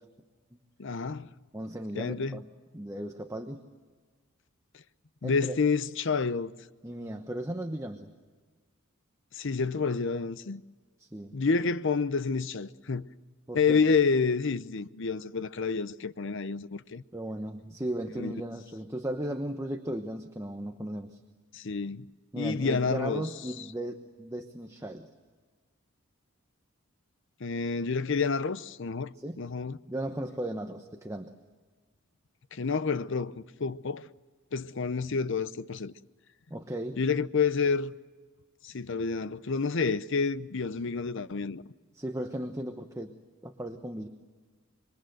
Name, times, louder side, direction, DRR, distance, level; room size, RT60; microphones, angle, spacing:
voice 1, 0.8-1.3 2.0-2.4 4.7-4.8 5.2-6.5 9.3-10.6 11.3-13.1 13.5-17.0 18.2-18.3 21.5-22.1 22.4-23.3 27.4-29.8 32.5-34.0 34.5-35.9 37.0-37.9 38.6-41.6, left 5 dB, 60° left, 0.7 m, -29 dB
voice 2, 1.5-2.5 2.7-3.6 5.2-5.5 6.8-8.1 11.0-11.4 13.5-13.8 17.1-21.2 22.3-25.1 29.2-29.4 29.9-31.3 36.5-37.0 41.9-43.2 43.4-44.1, right 1 dB, 15° right, 1.1 m, -36 dB
26.5 x 23.0 x 7.9 m
head